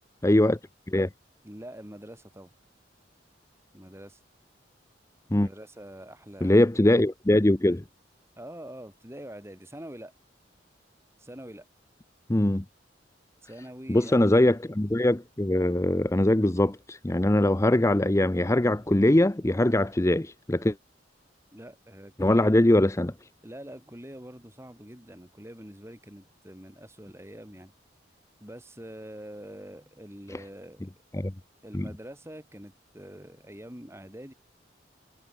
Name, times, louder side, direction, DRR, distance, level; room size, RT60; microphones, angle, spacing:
voice 1, 0.2-0.6 0.9-1.1 5.3-5.5 6.4-7.8 12.3-12.6 13.9-20.8 22.2-23.3 30.3-30.4 31.1-31.3 31.7-31.9, left 1 dB, 15° left, 0.6 m, -22 dB
voice 2, 1.4-2.5 3.7-4.2 5.3-6.7 8.4-10.1 11.2-11.7 13.4-14.6 21.5-22.6 23.4-27.7 28.4-30.9 31.6-34.3, right 1 dB, 15° right, 5.5 m, -45 dB
head